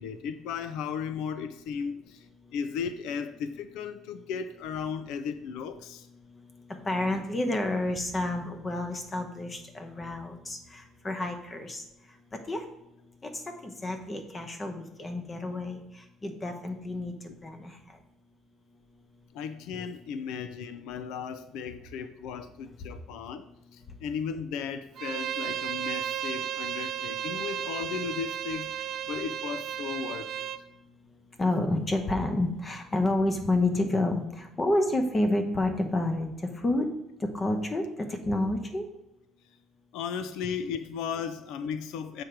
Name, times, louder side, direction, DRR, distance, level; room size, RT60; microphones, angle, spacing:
voice 1, 0.0-2.3 2.5-6.1 17.3-17.4 19.3-23.5 23.7-30.5 39.9-42.2, left 6 dB, 80° left, 11 dB, 0.5 m, -35 dB
voice 2, 6.9-11.8 12.5-12.6 13.2-13.3 13.6-15.8 16.2-17.1 17.4-17.7 31.4-36.3 36.6-36.9 37.3-38.8, left 2 dB, 20° left, 6 dB, 0.9 m, -29 dB
Bowed string instrument, 25.0-30.6, right 9 dB, 50° right, 0.4 m, -34 dB
7.2 x 5.1 x 4.5 m, 0.90 s
cardioid pair, 165°, 0 cm